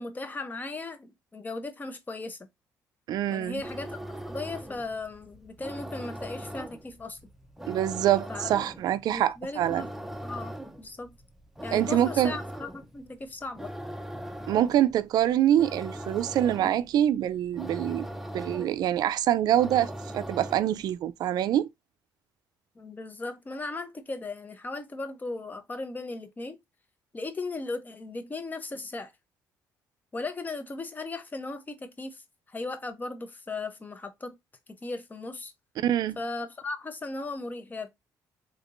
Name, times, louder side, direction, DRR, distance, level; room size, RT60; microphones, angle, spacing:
voice 1, 0.0-2.4 3.3-4.0 4.3-7.2 8.3-8.6 9.1-9.9 10.2-11.1 11.6-13.7 22.8-26.6 27.1-29.1 30.1-34.4 34.7-35.5 36.2-37.9, left 3 dB, 25° left, 0.8 m, -37 dB
voice 2, 3.1-3.6 7.7-9.9 11.7-12.4 14.5-18.1 18.3-21.7 35.8-36.2, right 11 dB, 65° right, 0.4 m, -25 dB
sound 1, 3.5-20.9, right 1 dB, 5° right, 0.6 m, -40 dB
3.5 x 2.8 x 2.5 m
cardioid pair, 90°, 7 cm